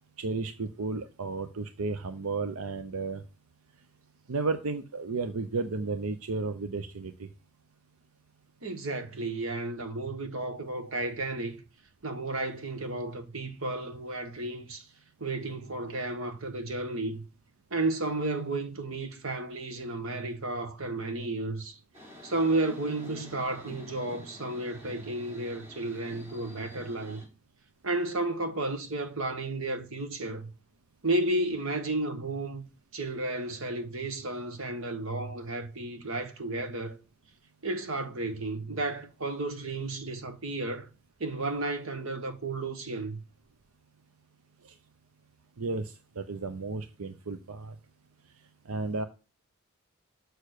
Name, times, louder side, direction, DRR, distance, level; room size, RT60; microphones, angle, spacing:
voice 1, 0.2-3.2 4.3-7.3 44.6-44.7 45.6-47.8 48.7-49.1, right 3 dB, 90° right, 0.7 m, -33 dB
voice 2, 8.6-11.6 12.0-14.9 15.2-17.2 17.7-21.8 22.2-27.2 27.8-30.5 31.0-32.6 32.9-37.0 37.6-40.9 41.2-43.2, right 2 dB, 65° right, 1.3 m, -32 dB
sound 1, 21.9-27.3, equal, 35° right, 5.0 m, -48 dB
6.7 x 6.5 x 6.5 m
head